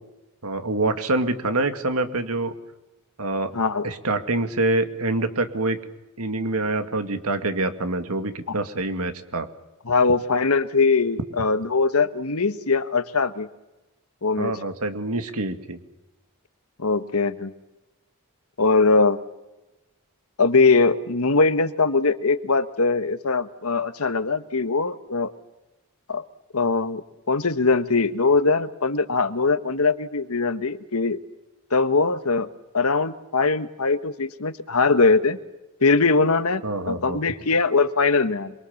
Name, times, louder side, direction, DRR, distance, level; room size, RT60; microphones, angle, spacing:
voice 1, 0.4-2.5 3.2-3.5 3.8-5.8 6.2-9.5 14.4-15.8 36.6-37.2, right 2 dB, 80° right, 8 dB, 2.2 m, -26 dB
voice 2, 3.5-3.9 9.8-13.5 14.2-14.5 16.8-17.5 18.6-19.2 20.4-25.3 26.1-26.2 26.5-27.0 27.3-31.2 31.7-32.5 32.7-35.4 35.8-38.5, left 4 dB, 80° left, 11 dB, 1.4 m, -21 dB
27.5 x 23.0 x 7.2 m, 1.0 s
head